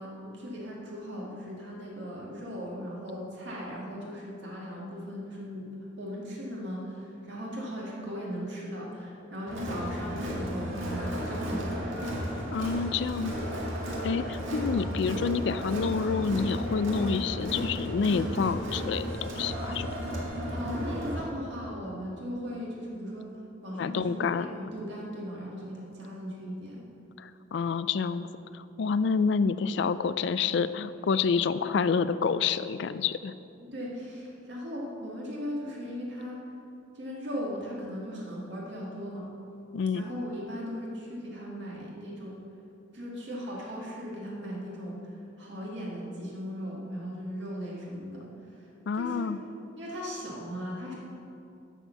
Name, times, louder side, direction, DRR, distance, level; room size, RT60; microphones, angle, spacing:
voice 1, 0.0-5.7 6.0-11.9 20.5-23.3 23.6-26.8 33.6-36.4 36.9-39.3 39.9-42.4 42.9-49.3 49.8-50.9, equal, 60° right, -4 dB, 1.8 m, -38 dB
Crowd, 9.5-21.2, equal, 80° right, 1.9 m, -34 dB
voice 2, 12.5-13.3 14.0-19.9 23.8-24.5 27.2-28.3 28.5-33.3 39.7-40.1 48.9-49.4, left 5 dB, 60° left, 14 dB, 0.3 m, -28 dB
11.5 x 4.4 x 6.9 m, 2.7 s
head